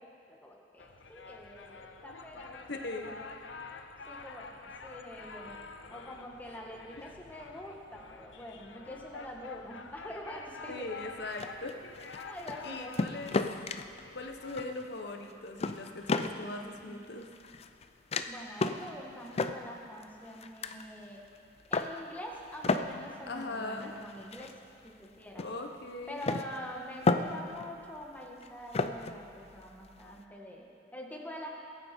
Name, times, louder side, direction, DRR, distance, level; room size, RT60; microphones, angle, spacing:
voice 1, 0.0-3.3 4.1-5.6 5.9-11.4 12.2-13.1 16.9-17.0 18.3-21.2 21.7-24.5 24.8-25.4 26.1-31.5, equal, 10° left, -1 dB, 1.7 m, -45 dB
sound 1, 0.8-14.6, left 4 dB, 85° left, 0.8 m, -48 dB
voice 2, 2.7-3.1 7.0-7.1 10.7-11.9 12.6-13.4 14.1-17.3 23.3-23.9 25.3-26.4, left 2 dB, 65° left, 4 dB, 1.2 m, -40 dB
sound 2, 11.3-12.6 12.9-14.0 14.5-15.0 15.3-16.5 17.0-17.9 18.1-18.3 18.6-18.9 19.3-20.9 21.3-22.0 22.4-25.1 25.4-25.5 26.2-27.7 28.0-30.2, left 3 dB, 35° left, 0.5 m, -33 dB
22.0 x 9.3 x 4.5 m, 2.5 s
head